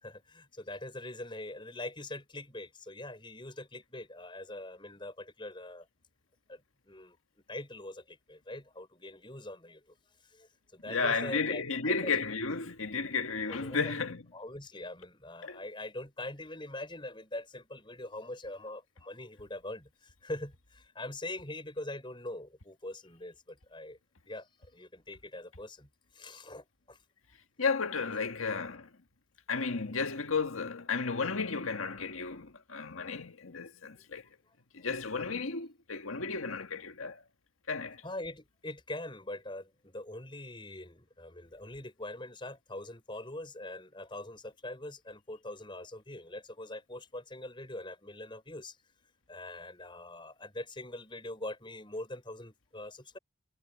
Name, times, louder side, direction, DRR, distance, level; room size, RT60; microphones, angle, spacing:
voice 1, 0.0-5.9 6.5-6.6 6.9-7.2 7.5-9.9 10.2-12.1 13.5-14.0 14.3-24.0 24.3-25.9 26.1-27.0 38.0-48.8 49.3-53.2, left 1 dB, 25° left, 6.1 m, -43 dB
voice 2, 10.9-14.3 15.4-15.6 27.6-28.9 29.5-34.2 34.7-37.2 37.7-38.0, left 4 dB, 80° left, 1.7 m, -33 dB
head